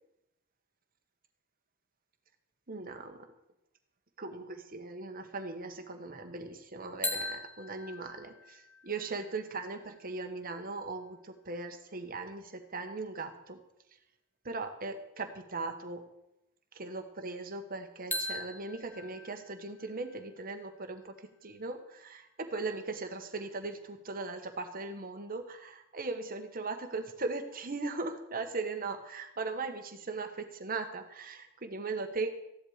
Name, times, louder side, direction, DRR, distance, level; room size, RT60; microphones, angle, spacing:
voice 1, 2.7-3.3 4.2-13.6 14.4-16.0 16.7-21.1 21.4-32.3, right 3 dB, 40° right, 6 dB, 1.4 m, -39 dB
sound 1, 7.0-10.9 18.1-22.0, left 2 dB, 10° left, 1.3 m, -42 dB
15.0 x 11.0 x 5.0 m, 0.85 s
head